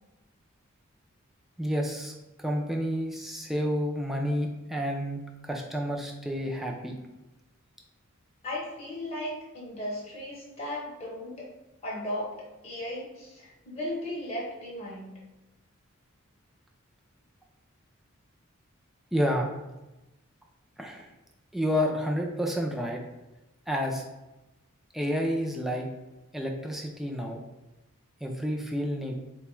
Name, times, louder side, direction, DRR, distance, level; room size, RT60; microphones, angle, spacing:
voice 1, 1.6-2.1 2.4-7.0 19.1-19.5 20.8-21.1 21.5-23.0 23.7-24.0 24.9-25.9 26.3-27.4 28.2-29.2, equal, ahead, 0 dB, 0.4 m, -30 dB
voice 2, 8.4-11.5 11.8-12.4 12.6-15.1, left 1 dB, 30° left, -6 dB, 0.8 m, -36 dB
4.0 x 2.2 x 3.0 m, 1.0 s
head